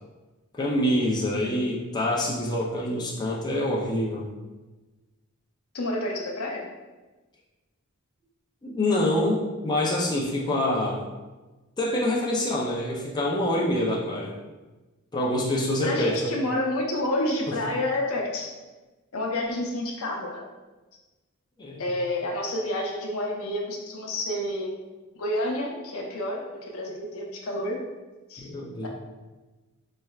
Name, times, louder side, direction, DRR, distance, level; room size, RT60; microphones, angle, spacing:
voice 1, 0.6-4.3 8.6-11.0 11.8-14.3 15.1-16.4 17.5-17.6 21.6-21.8 28.4-28.9, left 1 dB, 20° left, -4 dB, 0.4 m, -26 dB
voice 2, 5.7-6.6 15.8-18.5 19.1-20.4 21.8-24.8 25.1-27.8 28.3-28.5, left 1 dB, 75° left, 0 dB, 0.7 m, -29 dB
4.3 x 3.2 x 2.3 m, 1.2 s
head